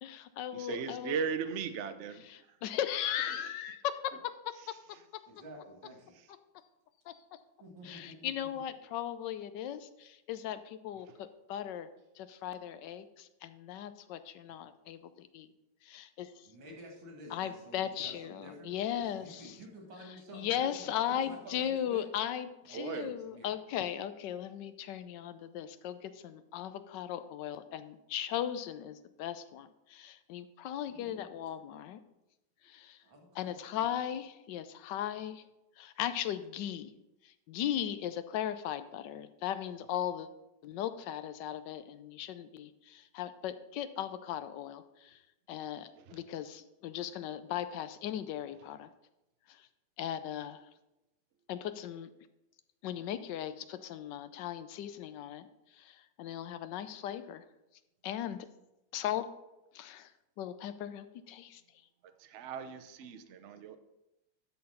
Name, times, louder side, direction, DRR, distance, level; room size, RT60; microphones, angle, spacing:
voice 1, 0.0-1.2 2.3-4.1 4.4-4.7 7.1-7.2 7.8-11.9 12.2-15.5 15.8-16.4 17.3-19.5 20.3-32.0 32.6-33.0 33.4-35.4 35.8-36.9 37.2-40.3 40.6-45.2 45.5-48.9 49.5-49.6 50.0-50.6 51.5-52.1 52.8-55.5 55.7-57.4 58.0-58.5 58.9-59.2 59.7-60.1 60.4-61.6, left 10 dB, 75° left, 12 dB, 1.2 m, -37 dB
voice 2, 0.5-2.6 3.2-3.5 11.1-11.2 22.7-23.1 46.0-46.2 62.2-63.8, right 6 dB, 60° right, 10 dB, 0.7 m, -38 dB
voice 3, 5.3-6.2 7.6-8.6 16.4-22.0 22.6-23.5 30.9-31.4 33.0-34.0, equal, 80° right, 0 dB, 2.7 m, -51 dB
12.5 x 4.3 x 5.5 m, 0.94 s
omnidirectional pair, 2.1 m